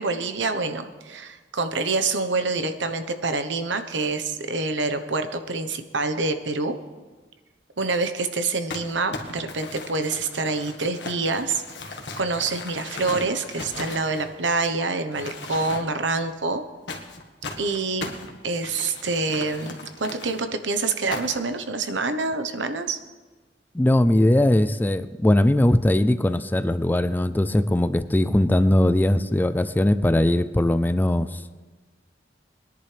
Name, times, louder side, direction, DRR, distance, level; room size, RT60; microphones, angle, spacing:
voice 1, 0.0-6.8 7.8-16.6 17.6-18.1 18.4-23.0, right 3 dB, 85° right, 9 dB, 1.0 m, -26 dB
Crumpling crinkling, 8.7-14.7 15.1-16.1 16.9-20.4 21.1-21.5, left 3 dB, 70° left, 1.6 m, -37 dB
voice 2, 23.7-31.4, left 1 dB, 10° left, 13 dB, 0.4 m, -20 dB
22.0 x 10.5 x 3.4 m, 1.3 s
head